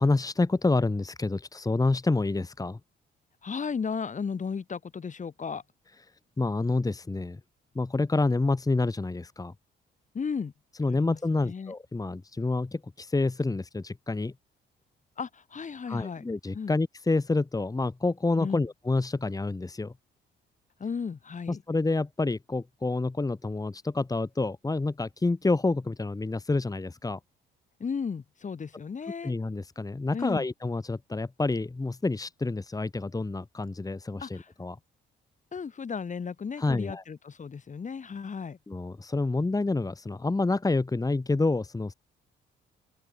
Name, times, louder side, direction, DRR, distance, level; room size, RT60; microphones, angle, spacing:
voice 1, 0.0-2.8 6.4-7.4 7.7-9.5 10.8-14.3 15.9-19.9 21.5-27.2 29.2-34.8 36.6-37.0 38.7-41.9, left 3 dB, 20° left, 2.2 m, -28 dB
voice 2, 3.4-5.6 10.1-10.5 10.9-11.7 15.2-16.2 16.5-16.7 18.4-18.7 20.8-21.6 27.8-29.3 30.1-30.4 34.2-34.5 35.5-38.6, left 5 dB, 40° left, 3.4 m, -35 dB
open air
cardioid pair, 90°, 20 cm